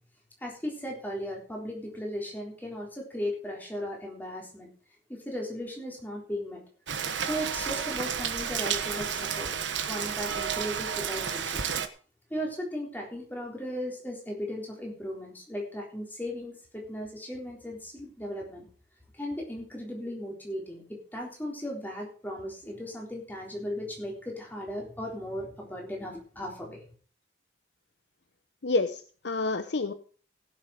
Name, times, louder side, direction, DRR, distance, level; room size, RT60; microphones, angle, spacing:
voice 1, 0.4-4.7 5.3-6.6 7.2-9.5 9.9-11.6 12.3-18.7 19.1-26.8, equal, 10° left, -1 dB, 3.8 m, -36 dB
Rain, 6.9-11.9, right 7 dB, 80° right, 1.2 m, -31 dB
voice 2, 28.6-29.9, left 3 dB, 65° left, 10 dB, 0.8 m, -28 dB
17.0 x 7.7 x 5.0 m, 0.41 s
head